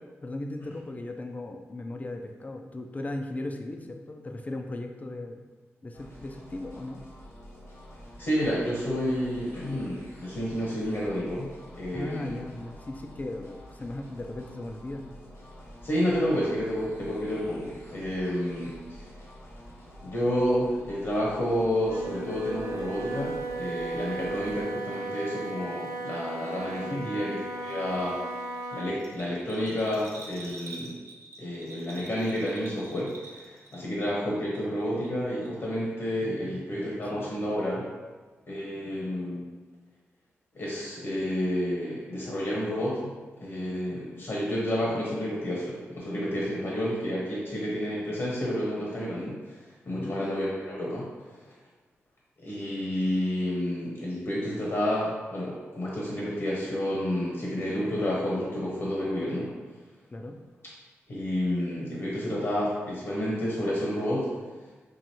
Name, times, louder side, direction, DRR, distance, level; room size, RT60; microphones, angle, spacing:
voice 1, 0.2-5.5 5.8-7.0 11.9-15.1 26.8-27.2 36.2-37.3 49.9-50.2 60.1-60.4, left 1 dB, 30° left, 4 dB, 0.4 m, -37 dB
sound 1, 5.9-24.6, equal, 80° left, 1.3 m, -48 dB
voice 2, 8.2-12.4 15.8-19.1 20.0-31.0 31.4-37.8 38.5-39.5 40.5-43.1 43.4-51.5 52.4-59.5 61.1-64.3, equal, 65° left, -5 dB, 1.0 m, -30 dB
Wind instrument woodwind instrument, 21.8-29.0, right 2 dB, 85° right, 0.3 m, -35 dB
Bell, 29.0-34.1 34.4-35.1 35.4-35.5, right 2 dB, 70° right, 0.7 m, -46 dB
4.8 x 2.5 x 2.9 m, 1.4 s
cardioid pair, 60°, 5 cm